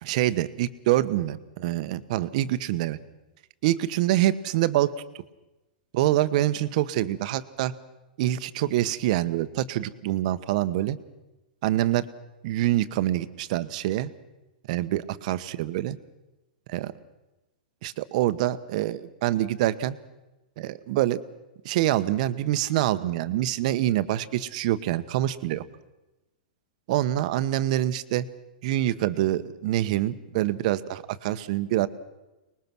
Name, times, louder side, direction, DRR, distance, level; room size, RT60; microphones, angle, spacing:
voice 1, 0.0-3.0 3.6-4.9 5.9-7.7 8.2-11.0 11.6-12.0 12.4-14.1 14.7-16.0 16.7-16.9 17.8-20.0 20.6-21.2 21.6-25.6 26.9-28.3 28.6-31.9, right 14 dB, 55° right, 13 dB, 1.2 m, -25 dB
24.5 x 21.0 x 6.2 m, 1.0 s
hypercardioid pair, 130°, 5 cm